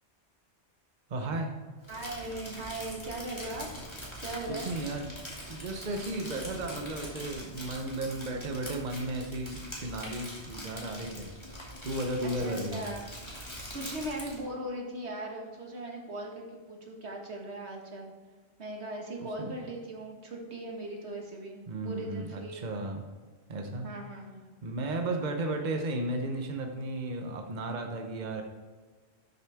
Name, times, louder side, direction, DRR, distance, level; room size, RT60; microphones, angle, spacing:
voice 1, 1.1-1.5 4.5-5.1 5.5-11.3 11.8-12.9 19.2-19.6 21.7-23.0 23.5-23.9 24.6-28.4, right 2 dB, 45° right, 3 dB, 1.0 m, -34 dB
Crumpling crinkling, 1.8-14.4, equal, 25° left, 2.5 m, -43 dB
voice 2, 1.9-3.7 4.2-4.7 12.2-13.1 13.7-18.1 18.6-22.7 23.8-24.4, right 1 dB, 75° right, 0 dB, 1.9 m, -39 dB
12.0 x 6.8 x 3.5 m, 1.4 s
omnidirectional pair, 1.1 m